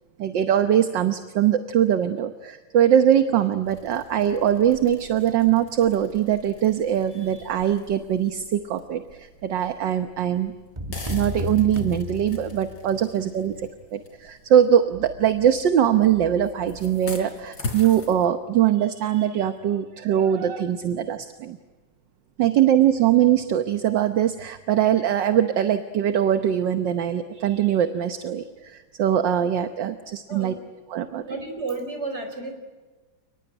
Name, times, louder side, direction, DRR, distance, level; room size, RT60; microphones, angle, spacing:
voice 1, 0.2-10.5 11.1-21.6 22.4-30.6 30.9-31.2, right 10 dB, 65° right, 8 dB, 1.7 m, -22 dB
sound 1, 3.6-15.6 16.3-18.3, left 3 dB, 65° left, 4.4 m, -42 dB
sound 2, 10.8-13.0, left 2 dB, 15° right, 1.4 m, -32 dB
voice 2, 30.3-30.6 31.1-32.5, right 3 dB, 30° right, 6 dB, 4.8 m, -32 dB
29.5 x 20.0 x 9.9 m, 1.3 s
omnidirectional pair, 2.2 m